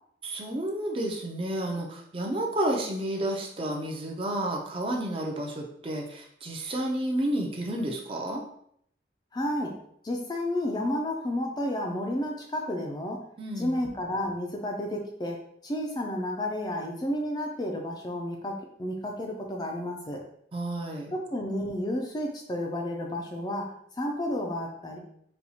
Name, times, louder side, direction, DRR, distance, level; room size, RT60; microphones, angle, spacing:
voice 1, 0.2-8.4 13.4-13.8 20.5-21.1, right 1 dB, 30° right, 0 dB, 0.5 m, -31 dB
voice 2, 9.3-9.7 10.0-13.2 13.6-20.2 21.1-25.0, left 1 dB, 20° left, 1 dB, 0.4 m, -31 dB
4.2 x 2.3 x 2.7 m, 0.68 s
head